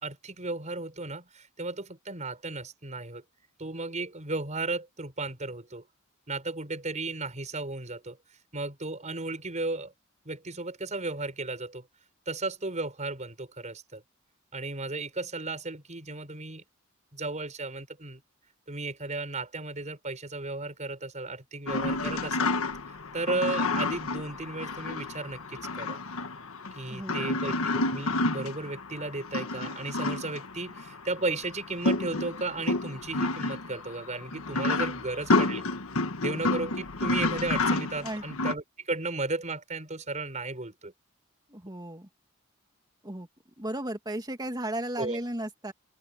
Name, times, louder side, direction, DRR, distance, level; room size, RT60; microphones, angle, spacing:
voice 1, 0.0-3.2 3.6-5.8 6.3-8.2 8.5-9.9 10.3-11.9 12.3-14.0 14.5-16.6 17.1-18.2 18.7-22.5 22.9-26.0 26.7-35.6 36.2-40.9 45.0-45.2, right 3 dB, 35° right, 5.3 m, -35 dB
sound 1, 21.7-38.5, left 2 dB, 80° left, 1.5 m, -30 dB
voice 2, 26.9-27.5 38.0-38.2 41.5-42.1 43.0-43.3 43.6-45.7, right 1 dB, 20° right, 2.6 m, -35 dB
open air
head